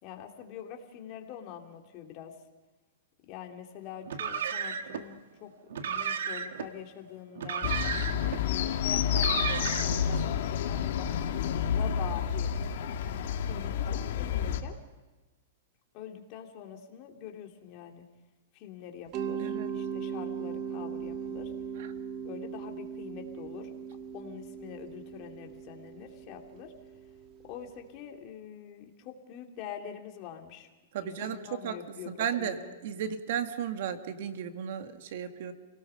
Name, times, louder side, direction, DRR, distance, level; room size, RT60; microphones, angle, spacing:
voice 1, 0.0-2.3 3.3-5.5 5.8-7.7 8.3-12.5 13.4-14.8 15.9-18.0 18.5-21.5 22.2-23.7 24.1-26.7 27.4-30.7 31.0-32.7, left 9 dB, 40° left, 2 dB, 2.7 m, -44 dB
Car, 4.0-5.0 5.7-6.7 7.4-8.4 9.1-10.0, right 7 dB, 80° right, 1.7 m, -33 dB
sound 1, 7.6-14.6, left 8 dB, 60° left, 2.4 m, -29 dB
Mallet percussion, 19.1-27.9, right 7 dB, 35° right, 1.4 m, -39 dB
voice 2, 30.9-31.4 31.6-31.8 32.2-35.5, right 8 dB, 60° right, 7 dB, 1.9 m, -34 dB
29.5 x 18.5 x 5.6 m, 1.2 s
hypercardioid pair, 150°, 0 cm